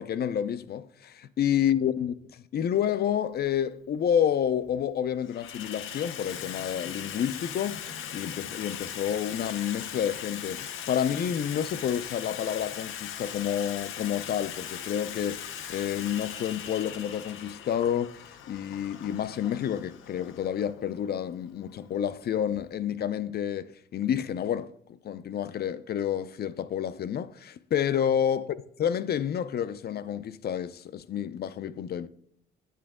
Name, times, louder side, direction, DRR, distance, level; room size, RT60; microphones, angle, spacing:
voice 1, 0.0-7.9 8.1-18.2 18.5-24.7 25.0-32.1, left 9 dB, 55° left, 0.5 m, -29 dB
Water tap faucet / Sink (filling or washing), 3.3-3.5 4.4-4.8 5.1-22.7, left 9 dB, 85° left, 0.8 m, -40 dB
8.9 x 8.2 x 3.6 m
cardioid pair, 90°, 20 cm